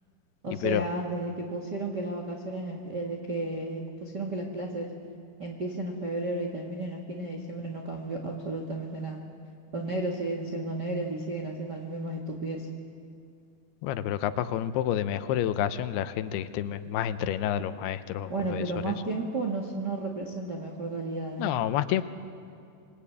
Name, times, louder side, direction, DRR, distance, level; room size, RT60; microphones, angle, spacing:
voice 1, 0.4-4.9 5.4-9.2 9.7-12.7 18.3-21.5, right 2 dB, 45° right, 1 dB, 1.3 m, -33 dB
voice 2, 13.8-19.0 21.4-22.0, left 11 dB, 80° left, 12 dB, 2.7 m, -29 dB
26.5 x 22.0 x 8.5 m, 2.4 s
omnidirectional pair, 4.8 m